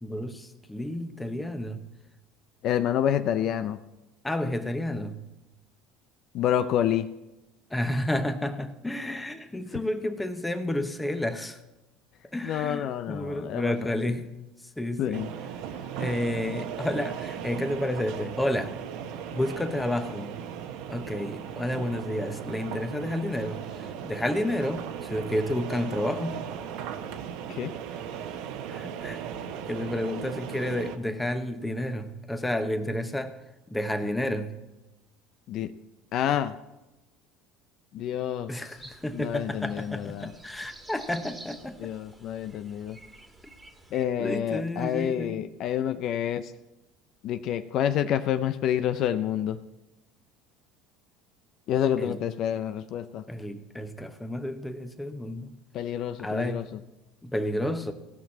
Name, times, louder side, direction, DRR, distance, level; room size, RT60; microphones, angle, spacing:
voice 1, 0.0-1.8 4.2-5.2 7.7-11.6 12.3-14.4 14.8-15.3 15.9-18.8 19.3-20.4 20.9-26.4 28.7-29.2 29.7-33.4 33.7-34.6 38.5-41.9 44.2-45.4 52.0-52.2 53.3-55.5 56.2-56.6 57.2-57.9, left 1 dB, 5° left, 8 dB, 1.1 m, -31 dB
voice 2, 2.6-3.8 6.3-7.1 12.4-13.9 15.0-15.3 27.5-27.7 35.5-35.7 36.1-36.5 37.9-38.5 39.1-40.3 41.8-43.0 43.9-46.5 47.2-49.6 51.7-53.2 55.7-56.8, left 10 dB, 55° left, 11 dB, 0.6 m, -28 dB
sound 1, 15.1-31.0, right 8 dB, 70° right, 1.1 m, -37 dB
sound 2, 38.7-44.0, right 2 dB, 10° right, 1.8 m, -50 dB
17.0 x 6.0 x 7.3 m, 1.0 s
cardioid pair, 125°, 0 cm